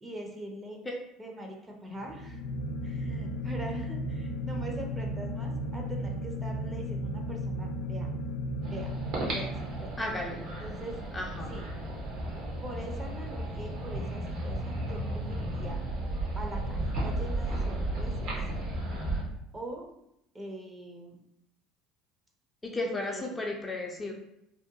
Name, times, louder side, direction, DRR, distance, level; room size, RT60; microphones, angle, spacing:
voice 1, 0.0-0.8 1.2-2.4 2.8-8.1 8.7-8.9 9.3-10.0 10.6-10.9 11.5-11.7 12.3-15.8 16.4-18.3 19.5-20.0 20.3-21.2 23.0-23.3, right 1 dB, 25° right, 1 dB, 0.6 m, -42 dB
sound 1, 2.0-10.3, equal, 75° left, 0.3 m, -35 dB
sound 2, 8.6-19.2, right 1 dB, 65° right, 0.9 m, -34 dB
voice 2, 10.0-10.4 11.1-11.6 22.6-24.1, left 2 dB, 20° left, 0 dB, 0.5 m, -34 dB
2.7 x 2.0 x 2.7 m, 0.79 s
hypercardioid pair, 75°, 0 cm